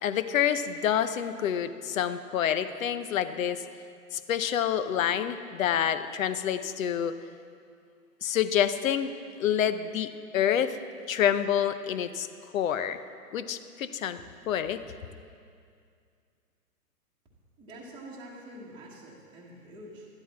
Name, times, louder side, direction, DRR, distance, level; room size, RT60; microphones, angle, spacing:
voice 1, 0.0-3.6 4.1-7.2 8.2-9.1 9.4-10.8 11.1-12.3 12.5-13.0 13.3-14.2 14.5-14.8, left 9 dB, 60° left, 12 dB, 0.7 m, -27 dB
voice 2, 17.6-20.1, right 1 dB, 10° right, -5 dB, 1.2 m, -46 dB
12.0 x 11.0 x 4.2 m, 2.3 s
hypercardioid pair, 145°, 47 cm